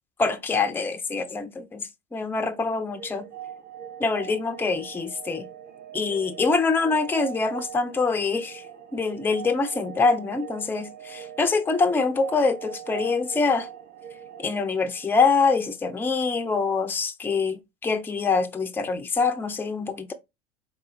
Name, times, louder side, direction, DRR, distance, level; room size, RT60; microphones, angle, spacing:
voice 1, 0.2-3.3 4.0-5.5 5.9-8.6 8.9-13.7 14.4-20.1, left 4 dB, 5° left, 0.5 m, -25 dB
sound 1, 2.9-15.7, right 9 dB, 30° right, 0.8 m, -41 dB
4.0 x 3.7 x 2.6 m
figure-of-eight pair, 70°, 32 cm